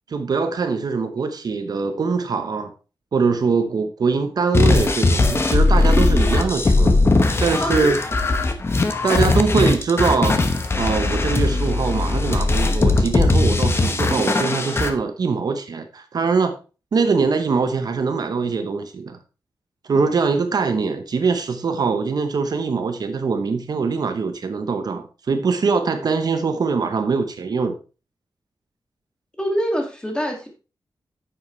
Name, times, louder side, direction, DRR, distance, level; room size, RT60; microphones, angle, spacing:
voice 1, 0.1-2.7 3.1-7.0 7.4-8.0 9.0-10.4 10.8-16.5 16.9-19.2 19.9-27.7, right 4 dB, 55° right, 0.9 m, -22 dB
sound 1, 4.5-14.9, left 2 dB, 30° left, 1.0 m, -19 dB
voice 2, 29.4-30.5, equal, 10° left, 2.2 m, -24 dB
10.0 x 7.5 x 3.2 m
wide cardioid pair, 165°, 8 cm